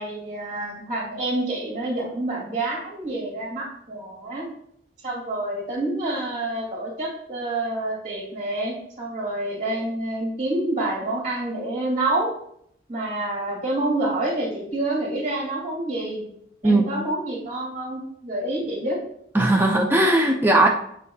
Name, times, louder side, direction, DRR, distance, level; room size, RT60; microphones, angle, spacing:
voice 1, 0.0-4.5 5.0-12.3 12.9-16.3 16.6-19.0, right 2 dB, 45° right, -4 dB, 2.3 m, -28 dB
voice 2, 19.3-20.7, right 2 dB, 10° right, 1 dB, 0.5 m, -18 dB
8.3 x 5.5 x 2.3 m, 0.70 s
head